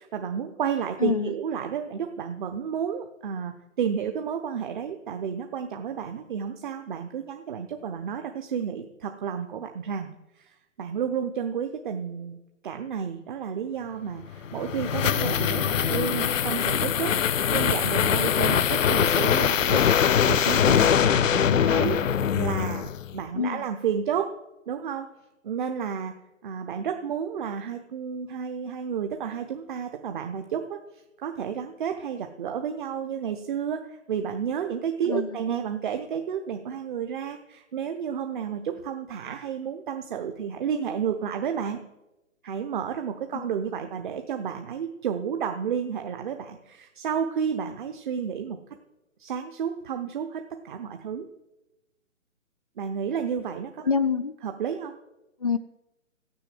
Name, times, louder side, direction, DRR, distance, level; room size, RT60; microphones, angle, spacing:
voice 1, 0.0-10.1 10.3-12.4 12.6-19.9 20.2-22.0 22.4-24.3 24.7-25.1 25.4-26.1 26.4-41.8 42.4-48.6 49.2-51.2 52.8-53.9 54.4-54.9, right 7 dB, 35° right, 6 dB, 1.0 m, -31 dB
voice 2, 1.0-1.3 23.4-23.6 35.1-35.4 43.3-43.4 53.8-54.3 55.4-55.6, left 5 dB, 30° left, 12 dB, 0.4 m, -25 dB
sound 1, 14.3-23.2, left 8 dB, 70° left, 0.7 m, -23 dB
15.5 x 6.8 x 7.6 m, 0.98 s
figure-of-eight pair, 140°, 40 cm